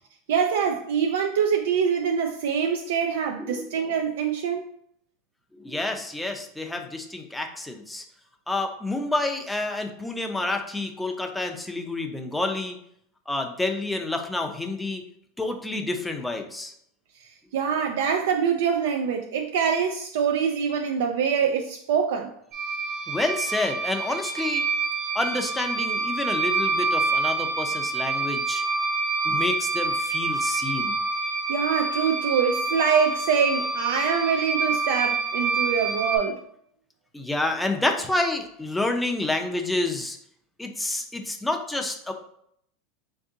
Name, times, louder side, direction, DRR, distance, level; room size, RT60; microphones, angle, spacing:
voice 1, 0.3-4.7 17.2-22.3 31.2-36.4, right 7 dB, 80° right, 0.3 m, -25 dB
voice 2, 5.6-8.0 8.5-12.8 13.3-15.0 15.4-16.7 23.1-24.7 25.1-28.6 29.2-30.9 37.1-40.2 40.6-42.1, left 2 dB, 5° left, 0.4 m, -29 dB
sound 1, 22.5-36.2, right 3 dB, 55° right, 1.1 m, -27 dB
3.5 x 2.6 x 3.6 m
supercardioid pair, 130°, 0 cm